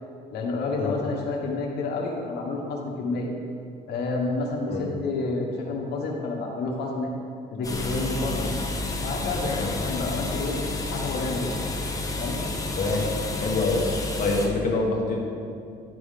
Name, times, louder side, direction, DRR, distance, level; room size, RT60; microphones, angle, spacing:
voice 1, 0.3-3.3 3.9-7.1 7.5-8.5 9.0-10.6 10.9-11.5 12.1-12.4, left 3 dB, 75° left, -1 dB, 1.5 m, -29 dB
sound 1, 7.6-14.5, left 2 dB, 20° left, 1.2 m, -30 dB
voice 2, 12.8-13.1 13.4-13.9 14.2-15.2, left 3 dB, 50° left, -1 dB, 1.7 m, -25 dB
11.0 x 4.0 x 5.1 m, 2.4 s
cardioid pair, 110°, 17 cm